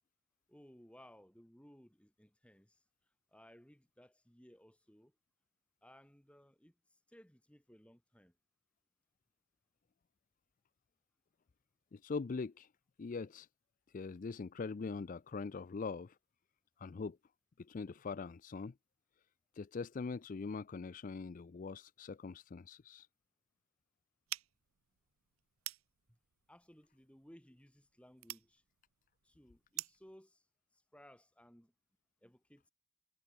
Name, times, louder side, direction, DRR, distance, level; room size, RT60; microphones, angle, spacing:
voice 1, 0.5-2.8 3.3-5.2 5.8-8.4 26.1-26.2 26.5-28.6 29.2-30.5 30.7-31.7 32.2-32.7, equal, 5° left, 1.9 m, -61 dB
voice 2, 11.9-12.7 13.0-13.5 13.9-16.2 16.8-17.2 17.6-18.7 19.5-23.1, left 4 dB, 40° left, 0.4 m, -42 dB
sound 1, 24.3-30.1, right 16 dB, 80° right, 0.6 m, -49 dB
head